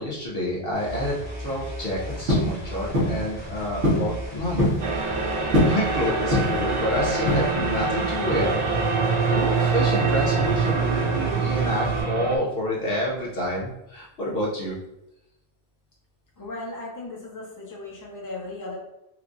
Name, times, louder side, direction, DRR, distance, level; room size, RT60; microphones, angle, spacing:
voice 1, 0.0-4.7 5.0-5.3 5.6-14.8, equal, 55° left, -5 dB, 1.0 m, -28 dB
sound 1, 0.7-12.0, left 1 dB, 40° left, 1.8 m, -36 dB
sound 2, 2.3-2.5 2.9-3.2 3.8-4.1 4.4-4.8 5.5-5.8 6.3-6.7 7.3-7.7, equal, 70° right, 1.3 m, -22 dB
sound 3, 4.8-12.4, right 4 dB, 50° right, 0.4 m, -25 dB
voice 2, 16.4-18.8, left 2 dB, 20° left, -4 dB, 0.9 m, -36 dB
4.5 x 2.4 x 2.5 m, 0.88 s
omnidirectional pair, 1.2 m